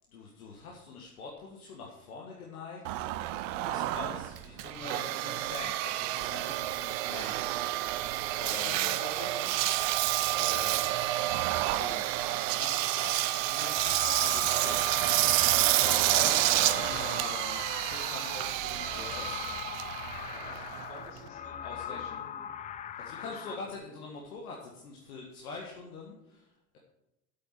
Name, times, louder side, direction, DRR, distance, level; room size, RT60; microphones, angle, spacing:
voice 1, 0.1-3.1 3.7-7.5 8.4-9.0 9.9-10.9 11.2-19.6 21.6-22.3 23.0-26.8, left 3 dB, 75° left, -1 dB, 1.7 m, -44 dB
Engine, 2.8-21.3, right 15 dB, 60° right, 0.8 m, -29 dB
voice 2, 8.4-9.5 9.7-10.1 10.5-10.8 20.2-22.5 23.0-23.8, left 2 dB, 45° left, -3 dB, 5.0 m, -49 dB
sound 1, 13.7-23.6, left 9 dB, 20° left, 0.4 m, -40 dB
8.2 x 7.5 x 7.8 m, 0.92 s
figure-of-eight pair, 65°, 43 cm